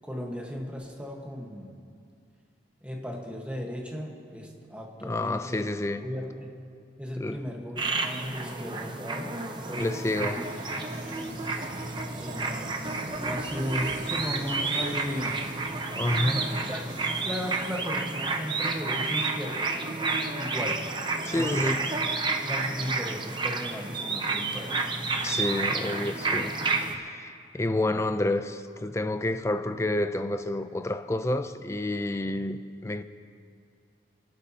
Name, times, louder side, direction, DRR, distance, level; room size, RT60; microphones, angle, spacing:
voice 1, 0.0-1.8 2.8-5.6 6.0-6.5 7.0-9.4 9.7-10.4 12.2-15.4 16.3-16.9 17.2-20.0 20.4-20.8 21.3-21.6 22.4-24.9, equal, 5° right, 1.3 m, -36 dB
voice 2, 5.0-6.1 7.2-7.4 9.8-10.4 15.9-16.5 21.2-21.9 25.2-26.5 26.9-33.0, left 1 dB, 15° left, 0.4 m, -29 dB
sound 1, 7.8-27.0, right 3 dB, 25° right, 0.7 m, -30 dB
sound 2, 9.0-18.7, right 2 dB, 80° right, 2.4 m, -46 dB
28.0 x 12.0 x 2.9 m
head